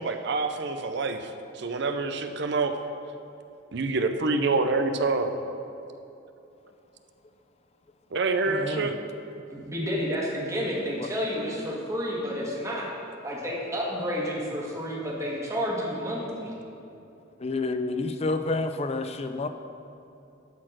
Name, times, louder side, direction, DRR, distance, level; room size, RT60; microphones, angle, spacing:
voice 1, 0.0-2.8 3.7-5.3 8.1-8.9, right 3 dB, 60° right, 7 dB, 0.6 m, -26 dB
voice 2, 8.5-8.9 11.0-11.1 17.4-19.5, left 3 dB, 30° left, 8 dB, 0.4 m, -29 dB
voice 3, 9.5-12.9 13.2-16.5, equal, 15° right, -4 dB, 1.6 m, -30 dB
12.0 x 4.3 x 6.1 m, 2.8 s
head